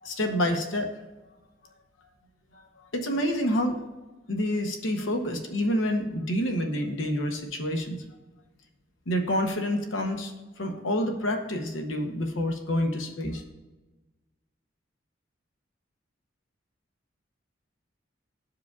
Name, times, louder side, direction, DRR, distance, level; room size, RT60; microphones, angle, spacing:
voice 1, 0.0-0.9 2.5-2.6 2.9-3.8 4.3-8.0 9.1-13.4, equal, 85° left, 4 dB, 0.8 m, -28 dB
13.0 x 4.8 x 2.4 m, 1.1 s
head